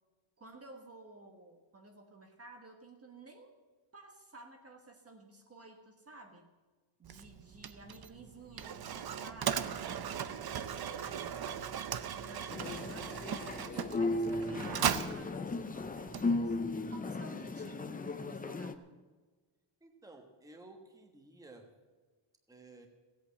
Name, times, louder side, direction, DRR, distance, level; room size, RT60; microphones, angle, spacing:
voice 1, 0.4-3.6 3.9-6.5 7.0-11.7 12.0-16.6 16.9-18.9, right 2 dB, 30° right, 4 dB, 1.2 m, -54 dB
Mechanisms, 7.0-16.7, right 9 dB, 50° right, 0.7 m, -38 dB
sound 1, 12.5-18.7, left 2 dB, 20° left, 0.5 m, -36 dB
voice 2, 19.8-21.7 22.5-22.9, right 2 dB, 5° right, 4 dB, 1.2 m, -54 dB
16.0 x 8.6 x 7.7 m, 1.3 s
wide cardioid pair, 175°, 50 cm